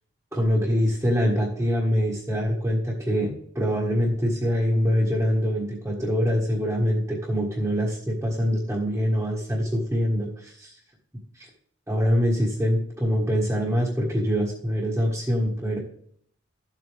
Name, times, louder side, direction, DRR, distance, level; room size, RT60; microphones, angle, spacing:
voice 1, 0.3-10.7 11.3-11.5 11.9-15.8, equal, 10° right, -5 dB, 1.6 m, -24 dB
12.5 x 7.9 x 3.4 m, 0.65 s
head